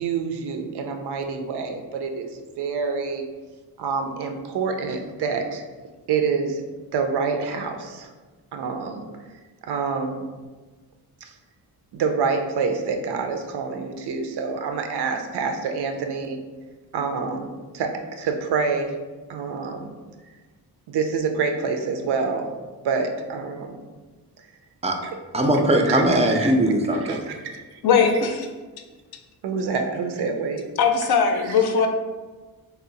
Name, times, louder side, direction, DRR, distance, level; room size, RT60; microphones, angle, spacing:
voice 1, 0.0-2.3 2.6-3.2 3.8-5.6 6.1-6.6 6.9-8.1 8.5-9.0 9.7-10.2 11.9-16.4 16.9-17.5 17.7-17.9 18.2-18.9 19.3-19.9 20.9-22.5 22.8-23.8 25.9-26.5 27.1-27.6 29.4-30.6, right 5 dB, 80° right, 0.5 m, -26 dB
voice 2, 25.3-27.2, right 1 dB, 20° right, 0.3 m, -20 dB
voice 3, 27.8-28.5 30.8-31.9, left 6 dB, 70° left, 0.5 m, -19 dB
2.8 x 2.0 x 3.8 m
cardioid pair, 95°, 39 cm